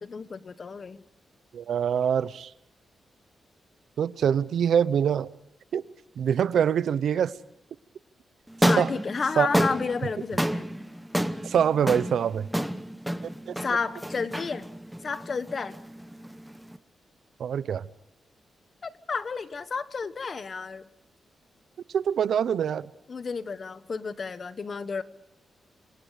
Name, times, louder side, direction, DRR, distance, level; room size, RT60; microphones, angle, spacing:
voice 1, 0.0-1.0 8.6-10.7 13.6-14.7 15.0-15.8 18.8-20.9 23.1-25.0, left 5 dB, 40° left, 1.3 m, -31 dB
voice 2, 1.5-2.5 4.0-5.3 5.7-5.8 6.2-7.3 8.8-8.9 9.4-9.5 11.4-12.5 13.5-13.6 17.4-17.9 21.9-22.9, right 8 dB, 80° right, 0.8 m, -24 dB
sound 1, 8.5-16.8, equal, 5° right, 1.0 m, -30 dB
27.0 x 26.5 x 5.1 m
wide cardioid pair, 130°, 0 cm